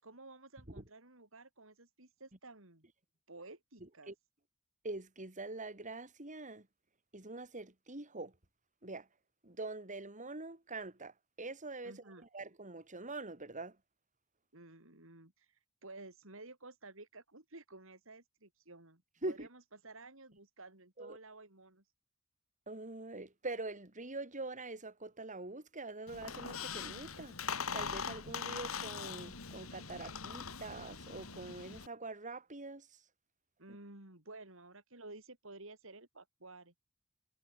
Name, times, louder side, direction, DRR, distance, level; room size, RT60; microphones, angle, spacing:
voice 1, 0.0-2.9 3.3-4.1 11.8-12.3 14.5-21.8 33.6-36.7, right 2 dB, 70° right, 5.4 m, -53 dB
voice 2, 3.8-4.1 4.8-6.7 7.1-8.3 8.8-9.1 9.4-13.8 19.2-19.5 21.0-21.2 22.7-33.0, right 2 dB, 35° right, 4.0 m, -44 dB
Squeak, 26.1-31.9, left 6 dB, 90° left, 2.9 m, -42 dB
head